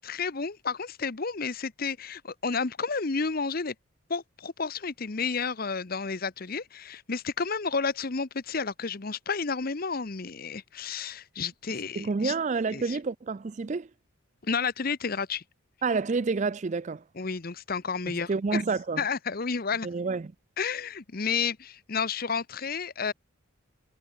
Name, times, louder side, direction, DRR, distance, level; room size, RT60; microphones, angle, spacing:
voice 1, 0.0-3.7 4.1-12.3 12.7-13.0 14.4-15.4 17.2-18.6 19.0-19.9 20.6-23.1, left 5 dB, 45° left, 0.8 m, -31 dB
voice 2, 12.0-13.9 15.8-17.0 18.1-19.0 19.8-20.3, right 4 dB, 35° right, 0.4 m, -29 dB
head